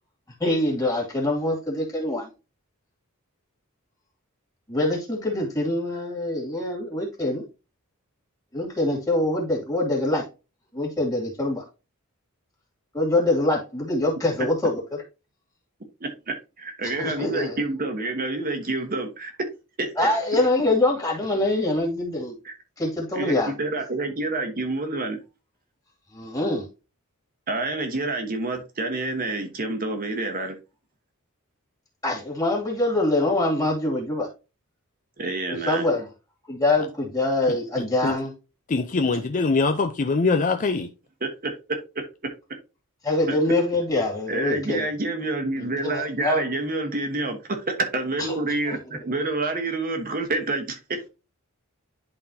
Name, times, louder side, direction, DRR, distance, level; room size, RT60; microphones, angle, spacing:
voice 1, 0.4-2.3 4.7-7.4 8.5-10.3 10.7-11.6 12.9-15.0 16.8-17.6 20.0-22.4 22.8-23.5 26.1-26.7 32.0-34.3 35.7-36.1 36.5-38.3 43.0-44.8 45.6-46.4 48.2-48.3 48.7-48.8, left 2 dB, 15° left, 2.3 m, -24 dB
voice 2, 16.0-19.3 19.8-19.9 22.4-22.5 23.1-25.2 27.5-30.6 35.2-35.8 39.1-39.2 41.2-42.0 43.3-43.4 44.3-51.1, right 2 dB, 40° right, 1.2 m, -28 dB
voice 3, 38.7-40.9, left 3 dB, 35° left, 0.5 m, -22 dB
11.0 x 3.9 x 2.7 m
head